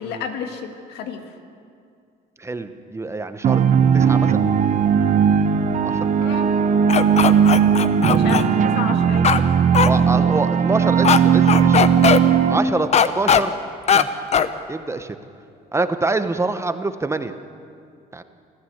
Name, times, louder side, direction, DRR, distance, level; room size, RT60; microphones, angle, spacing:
voice 1, 0.0-1.4 6.2-6.6 8.1-9.3, left 7 dB, 85° left, 5 dB, 2.0 m, -32 dB
voice 2, 2.4-3.6 3.9-4.5 5.8-6.0 9.8-11.9 12.4-13.5 13.9-14.1 14.7-15.1 15.7-17.3 18.1-18.2, right 3 dB, 15° right, 9 dB, 1.0 m, -25 dB
sound 1, 3.4-12.6, right 7 dB, 45° right, 1.0 m, -17 dB
sound 2, 6.9-8.4 9.2-9.4 9.7-9.9 11.0-11.2 11.5-12.2 12.9-13.4 13.9-14.0 14.3-14.5, left 7 dB, 40° left, 0.9 m, -17 dB
26.5 x 14.5 x 8.0 m, 2.4 s
cardioid pair, 110°, 17 cm